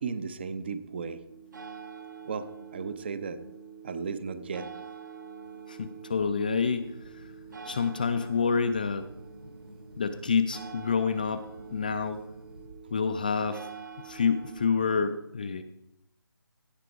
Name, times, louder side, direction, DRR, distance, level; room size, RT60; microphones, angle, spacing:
voice 1, 0.0-1.2 2.2-3.4 3.8-4.7, right 5 dB, 25° right, 13 dB, 0.6 m, -35 dB
sound 1, 1.3-14.9, right 6 dB, 50° right, 1.3 m, -46 dB
voice 2, 5.7-6.9 7.6-9.1 10.0-11.5 11.7-12.2 12.9-13.7 14.0-15.6, left 5 dB, 20° left, 9 dB, 0.4 m, -28 dB
sound 2, 6.4-12.7, right 1 dB, 75° right, 2.3 m, -50 dB
16.5 x 5.8 x 5.1 m, 0.82 s
figure-of-eight pair, 155°, 13 cm